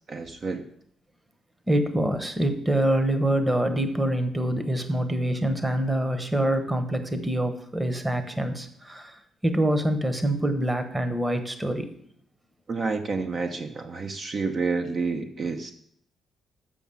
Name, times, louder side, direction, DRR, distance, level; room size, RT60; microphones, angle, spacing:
voice 1, 0.1-0.6 12.7-15.7, right 4 dB, 50° right, 5 dB, 0.9 m, -29 dB
voice 2, 1.7-11.9, right 1 dB, 15° right, 8 dB, 1.2 m, -25 dB
7.0 x 6.0 x 7.2 m, 0.65 s
supercardioid pair, 70°, 0 cm